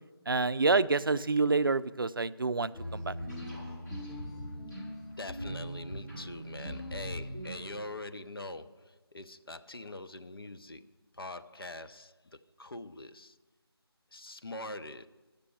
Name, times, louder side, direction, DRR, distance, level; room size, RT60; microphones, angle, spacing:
voice 1, 0.3-3.2, right 3 dB, 55° right, 16 dB, 0.4 m, -28 dB
sound 1, 2.7-7.9, equal, 45° left, 5.2 m, -40 dB
voice 2, 5.2-13.4 14.1-15.1, left 2 dB, 65° left, 10 dB, 0.7 m, -43 dB
11.0 x 6.8 x 9.4 m, 1.2 s
figure-of-eight pair, 160°, 13 cm